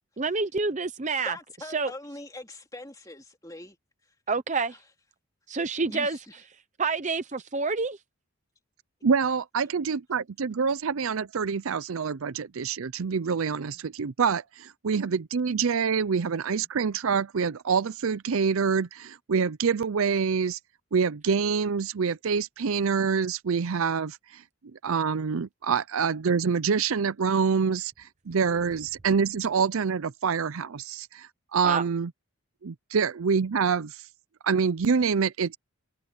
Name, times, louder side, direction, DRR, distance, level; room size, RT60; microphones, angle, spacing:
voice 1, 0.2-1.4 1.7-1.9 4.3-4.8 5.5-6.2 6.8-8.0 31.6-31.8, right 4 dB, 35° right, 0.7 m, -27 dB
voice 2, 1.2-3.8 4.7-4.8 5.9-6.3, left 2 dB, 15° left, 2.9 m, -42 dB
voice 3, 9.0-20.6 20.9-24.4 24.8-32.1 32.6-34.0 34.4-35.6, right 6 dB, 70° right, 0.5 m, -26 dB
head